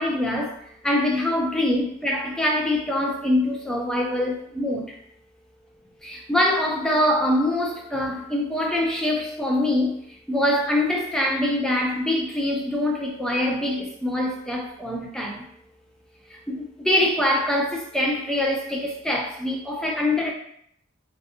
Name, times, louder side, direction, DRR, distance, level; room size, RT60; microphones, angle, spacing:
voice 1, 0.0-5.0 6.0-15.5 16.3-20.3, left 1 dB, 5° left, 0 dB, 0.4 m, -24 dB
2.6 x 2.1 x 2.7 m, 0.68 s
head